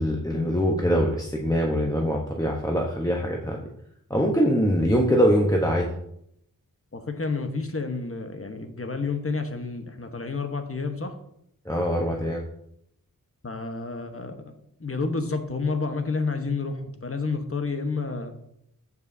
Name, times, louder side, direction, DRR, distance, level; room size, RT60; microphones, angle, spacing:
voice 1, 0.0-3.6 4.1-5.9 11.6-12.4, equal, 10° left, 0 dB, 1.0 m, -23 dB
voice 2, 6.9-11.1 13.4-14.4 14.8-18.3, left 4 dB, 40° left, 6 dB, 1.2 m, -30 dB
14.5 x 5.5 x 2.7 m, 0.74 s
wide cardioid pair, 55°, 35 cm